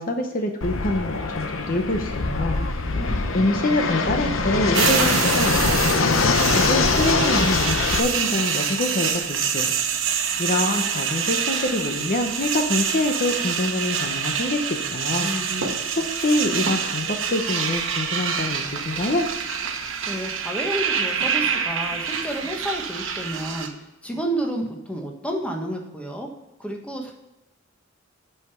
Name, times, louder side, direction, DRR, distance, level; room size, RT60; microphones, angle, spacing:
voice 1, 0.0-2.6 3.3-9.7 10.4-15.3 16.1-19.3, left 1 dB, 45° left, 4 dB, 0.9 m, -25 dB
Fixed-wing aircraft airplane, 0.6-8.0, left 3 dB, 75° left, 0.9 m, -23 dB
voice 2, 2.4-3.2 15.2-16.0 20.1-26.3 26.6-27.1, right 1 dB, 5° left, 1 dB, 1.3 m, -31 dB
sound 1, 4.7-23.7, right 7 dB, 70° right, 1.1 m, -26 dB
9.2 x 5.7 x 5.6 m, 1.0 s
head